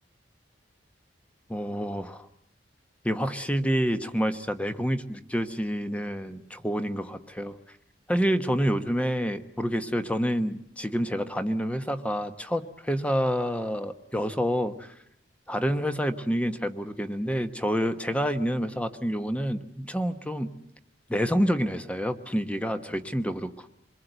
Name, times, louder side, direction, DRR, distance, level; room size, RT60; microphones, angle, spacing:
voice 1, 1.5-2.3 3.0-7.6 8.1-14.9 15.5-20.5 21.1-23.7, equal, 5° left, 9 dB, 1.0 m, -28 dB
26.5 x 22.0 x 8.0 m, 0.71 s
head